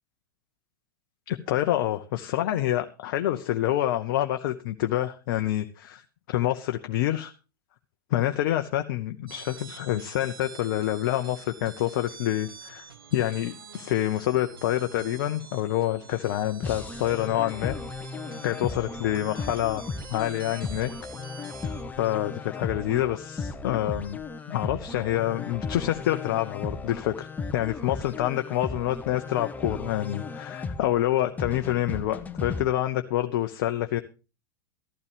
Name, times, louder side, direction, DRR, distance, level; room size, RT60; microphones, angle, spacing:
voice 1, 1.3-6.0 6.3-7.3 8.1-12.8 13.1-17.8 18.4-19.8 20.1-20.9 22.0-24.2 24.5-27.3 27.5-34.0, left 13 dB, 55° left, 7 dB, 0.8 m, -27 dB
sound 1, 9.3-21.8, right 6 dB, 80° right, 1.4 m, -47 dB
sound 2, 16.6-32.6, left 4 dB, 15° left, 1.2 m, -36 dB
14.0 x 12.0 x 3.4 m, 0.33 s
figure-of-eight pair, 90°, 12 cm